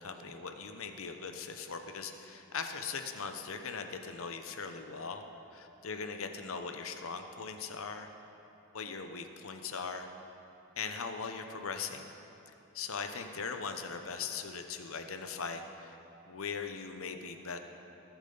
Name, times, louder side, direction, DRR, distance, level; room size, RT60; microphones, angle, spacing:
voice 1, 0.0-5.2 5.5-8.1 8.7-10.1 10.8-12.1 12.7-16.0 16.3-17.6, left 5 dB, 70° left, 6 dB, 0.8 m, -40 dB
19.0 x 7.1 x 3.9 m, 2.9 s
head